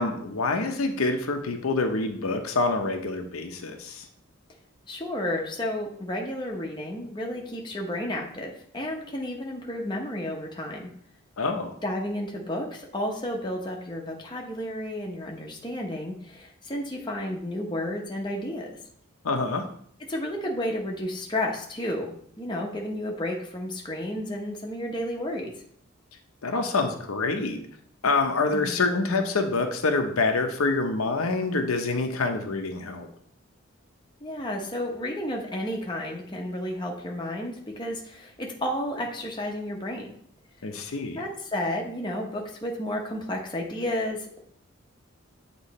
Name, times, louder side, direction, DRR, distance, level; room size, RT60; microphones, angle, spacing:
voice 1, 0.0-4.1 11.4-11.7 19.2-19.6 26.4-27.6 28.0-33.1 40.6-41.2, left 3 dB, 85° left, 4 dB, 0.8 m, -26 dB
voice 2, 4.9-10.9 11.8-18.7 20.1-25.5 28.5-28.8 34.2-40.1 41.1-44.4, left 1 dB, 20° left, 0 dB, 0.8 m, -32 dB
8.1 x 3.0 x 4.2 m, 0.64 s
head